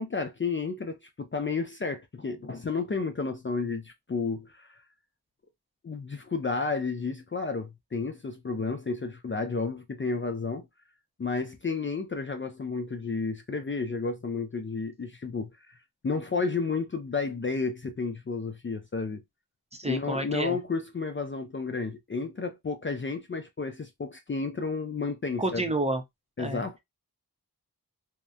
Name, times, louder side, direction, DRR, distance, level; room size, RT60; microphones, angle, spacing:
voice 1, 0.0-4.8 5.8-10.7 11.2-15.8 16.0-19.2 19.8-25.6 26.4-26.8, left 4 dB, 30° left, 0.4 m, -32 dB
voice 2, 19.7-20.6 25.4-26.0 26.4-26.6, right 1 dB, 15° right, 0.6 m, -29 dB
2.8 x 2.1 x 2.3 m
wide cardioid pair, 75°, 38 cm